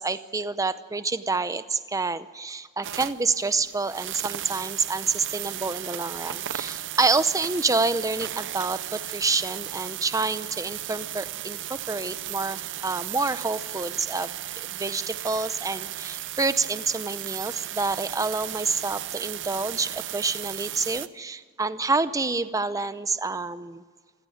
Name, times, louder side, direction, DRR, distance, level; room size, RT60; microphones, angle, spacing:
voice 1, 0.0-23.8, right 3 dB, 15° right, 12 dB, 0.6 m, -28 dB
sound 1, 2.8-21.1, right 12 dB, 60° right, 0.7 m, -35 dB
26.5 x 16.0 x 9.4 m, 1.5 s
head